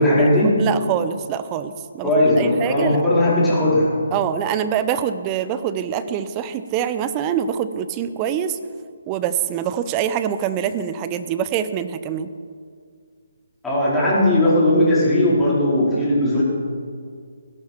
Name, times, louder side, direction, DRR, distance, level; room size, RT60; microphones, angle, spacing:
voice 1, 0.0-0.6 2.0-3.9 13.6-16.4, left 1 dB, 5° left, -9 dB, 4.6 m, -17 dB
voice 2, 0.6-2.1 2.4-3.0 4.1-8.6 9.1-12.3, right 9 dB, 25° right, 12 dB, 0.7 m, -24 dB
17.0 x 11.5 x 4.6 m, 2.1 s
figure-of-eight pair, 145°, 0 cm